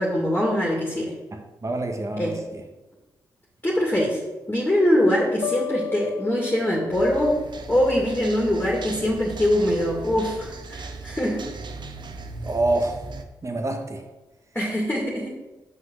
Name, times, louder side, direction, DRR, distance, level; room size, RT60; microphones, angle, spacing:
voice 1, 0.0-1.1 2.2-2.4 3.6-4.2 4.5-7.4 7.7-11.5 14.5-15.4, left 1 dB, 15° left, -3 dB, 2.4 m, -23 dB
voice 2, 1.3-2.6 12.4-13.0 13.4-14.0, right 2 dB, 35° right, 4 dB, 1.7 m, -27 dB
sound 1, 5.4-8.5, left 11 dB, 60° left, 0.5 m, -35 dB
sound 2, 6.9-13.2, right 3 dB, 55° right, 1.0 m, -37 dB
6.0 x 5.8 x 6.4 m, 1.1 s
supercardioid pair, 45°, 9 cm